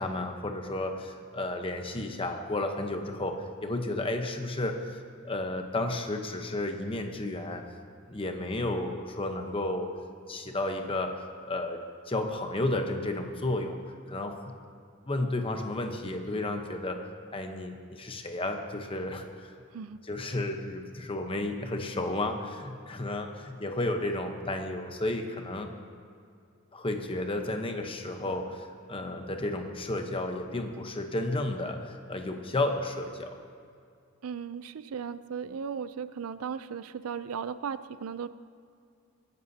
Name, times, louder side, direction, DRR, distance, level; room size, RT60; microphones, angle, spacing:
voice 1, 0.0-5.0 5.2-7.6 8.1-9.9 10.3-11.2 11.5-11.8 12.1-13.8 14.1-14.4 15.1-17.0 17.3-19.5 20.0-25.7 26.7-33.4, left 2 dB, 25° left, 5 dB, 0.9 m, -32 dB
voice 2, 34.2-38.3, right 6 dB, 85° right, 14 dB, 0.4 m, -36 dB
21.0 x 11.0 x 2.8 m, 2.3 s
head